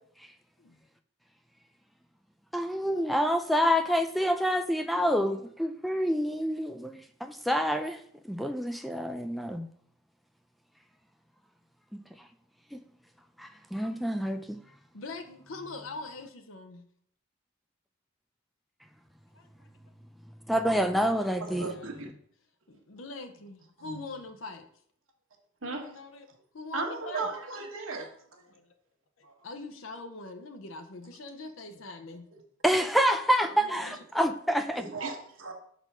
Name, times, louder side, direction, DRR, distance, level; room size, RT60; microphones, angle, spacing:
voice 1, 2.5-8.0 8.2-9.7 11.9-12.0 12.7-12.8 13.4-14.6 20.5-21.7 32.6-34.9, equal, ahead, 6 dB, 0.3 m, -27 dB
voice 2, 14.9-16.8 19.3-19.7 21.1-22.2 22.7-24.6 25.8-26.3 26.5-27.3 28.4-28.7 29.2-32.2 33.4-34.0, left 3 dB, 75° left, 7 dB, 0.7 m, -43 dB
voice 3, 21.6-22.1 23.8-24.0 25.6-25.9 26.7-28.1 29.2-29.3 34.7-35.5, right 3 dB, 75° right, 2 dB, 1.3 m, -36 dB
5.4 x 4.2 x 5.9 m, 0.63 s
head